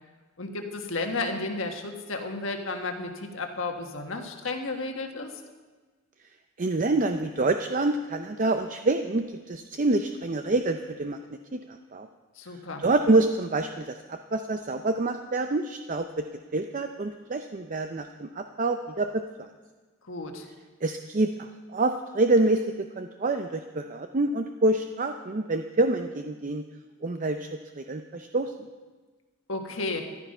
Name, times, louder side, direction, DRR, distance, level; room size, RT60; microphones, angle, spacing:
voice 1, 0.4-5.3 12.4-12.8 20.1-20.4 29.5-30.0, left 3 dB, 65° left, 4 dB, 1.6 m, -33 dB
voice 2, 6.6-11.2 11.5-12.1 12.5-16.3 16.5-19.5 20.8-26.6 27.0-28.5, right 2 dB, 40° right, 7 dB, 0.5 m, -27 dB
14.5 x 11.5 x 5.5 m, 1.3 s
head